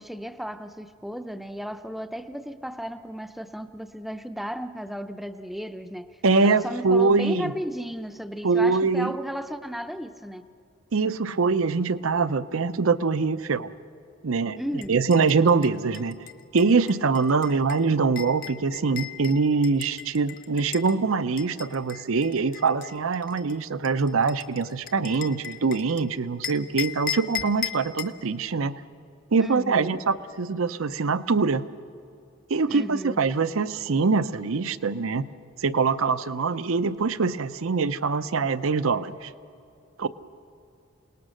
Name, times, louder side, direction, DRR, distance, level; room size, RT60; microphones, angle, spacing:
voice 1, 0.0-10.4 14.6-15.0 29.4-30.0 32.7-33.2, equal, ahead, 8 dB, 0.5 m, -34 dB
voice 2, 6.2-7.5 8.4-9.1 10.9-13.7 14.2-14.6 14.9-16.2 16.5-28.8 29.3-31.7 32.5-35.3 35.6-39.3 40.0-40.1, right 4 dB, 75° right, 14 dB, 0.7 m, -23 dB
sound 1, 14.8-20.9 21.4-26.0 26.4-28.2, left 10 dB, 40° left, 0.9 m, -37 dB
28.0 x 19.0 x 6.4 m, 2.5 s
head